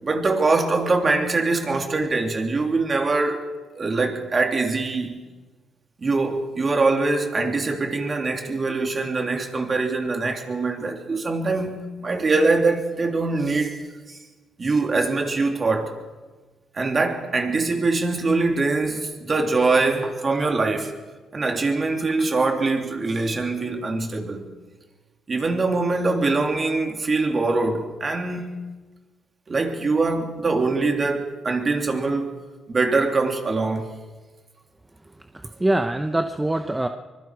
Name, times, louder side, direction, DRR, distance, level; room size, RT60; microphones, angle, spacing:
voice 1, 0.0-3.5 3.7-5.2 6.0-14.2 14.6-16.0 16.7-20.9 21.3-24.4 25.3-28.6 29.5-32.4 32.7-33.9, right 3 dB, 35° right, 3.1 m, -23 dB
voice 2, 35.2-36.9, right 1 dB, 15° right, 1.0 m, -24 dB
24.0 x 22.5 x 4.9 m
cardioid pair, 90°, 0 cm